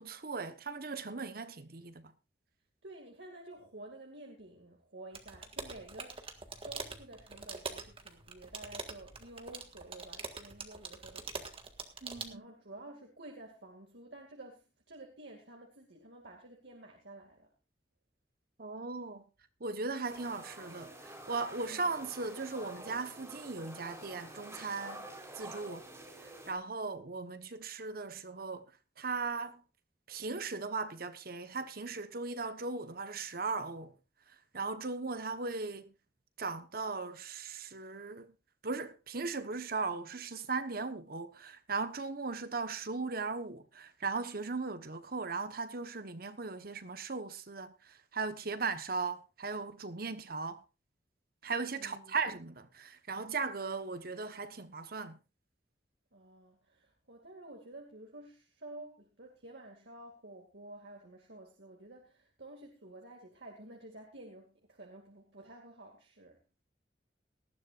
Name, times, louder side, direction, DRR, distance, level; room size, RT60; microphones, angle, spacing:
voice 1, 0.0-2.1 12.0-12.5 18.6-19.2 19.6-25.1 25.4-25.8 26.5-28.7 29.0-29.6 30.1-33.9 34.5-35.9 36.4-38.3 38.6-50.6 51.4-55.2, right 4 dB, 60° right, 1.2 m, -38 dB
voice 2, 2.8-11.6 11.9-17.5 21.7-21.9 51.8-52.1 56.1-66.4, right 2 dB, 80° right, 2.4 m, -51 dB
sound 1, 5.1-12.3, right 4 dB, 30° right, 1.6 m, -44 dB
sound 2, 20.1-26.5, right 1 dB, 15° right, 4.1 m, -49 dB
19.0 x 13.5 x 2.5 m
head